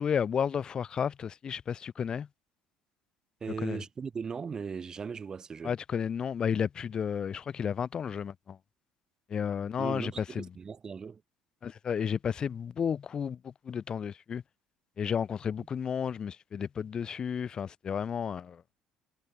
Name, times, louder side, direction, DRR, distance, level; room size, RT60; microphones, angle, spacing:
voice 1, 0.0-2.3 3.6-3.8 5.6-8.6 9.3-10.5 11.6-14.4 15.0-18.6, left 7 dB, 40° left, 1.1 m, -32 dB
voice 2, 3.4-5.7 9.8-11.2, right 6 dB, 35° right, 1.5 m, -38 dB
supercardioid pair, 90°, 2 cm